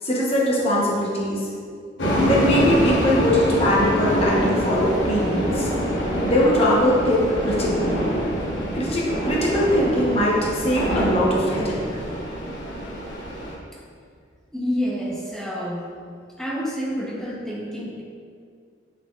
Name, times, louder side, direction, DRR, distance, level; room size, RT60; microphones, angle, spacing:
voice 1, 0.0-1.5 2.2-5.7 6.2-8.1 8.7-11.8, left 1 dB, 30° left, -5 dB, 0.9 m, -21 dB
sound 1, 2.0-13.5, equal, 80° left, 1.0 m, -24 dB
voice 2, 14.5-15.9 16.4-18.0, equal, 5° left, -4 dB, 0.9 m, -28 dB
8.3 x 5.7 x 2.4 m, 2.2 s
head